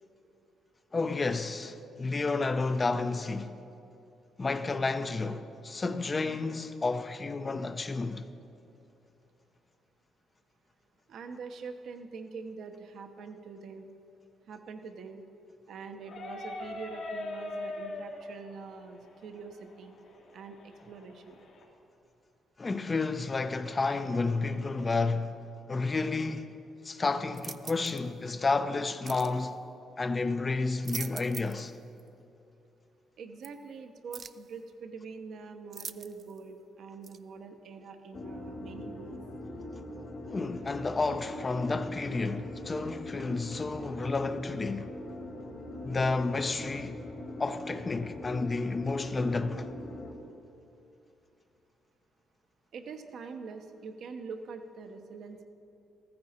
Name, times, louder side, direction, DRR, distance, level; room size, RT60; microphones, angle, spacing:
voice 1, 0.9-3.6 4.4-8.3 22.6-25.4 25.7-26.5 26.8-29.6 30.0-31.7 40.3-44.9 45.8-47.0 47.4-49.7, left 3 dB, 30° left, 0.7 m, -31 dB
voice 2, 11.1-13.9 14.5-15.3 15.7-20.0 20.3-21.4 33.2-39.2 52.7-55.4, right 4 dB, 65° right, 1.0 m, -44 dB
sound 1, 16.0-21.6, left 2 dB, 80° left, 2.9 m, -42 dB
sound 2, 27.3-28.1 29.0-29.4 30.6-31.7 32.0-32.1 33.4-33.5 34.1-34.5 35.7-36.4 37.0-37.2, right 6 dB, 45° right, 0.4 m, -42 dB
sound 3, 38.1-50.1, left 1 dB, 55° left, 2.3 m, -42 dB
14.5 x 14.0 x 4.3 m
cardioid pair, 90°, 0 cm